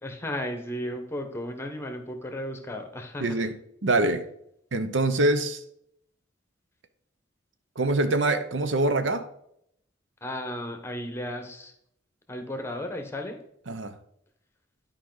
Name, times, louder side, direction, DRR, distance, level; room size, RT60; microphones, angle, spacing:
voice 1, 0.0-3.5 10.2-11.7 12.3-13.4, left 1 dB, 15° left, 1.1 m, -34 dB
voice 2, 3.2-3.5 3.8-4.3 4.7-5.6 7.8-9.3 13.7-13.9, right 2 dB, 75° right, 0.7 m, -24 dB
11.5 x 5.0 x 3.9 m
head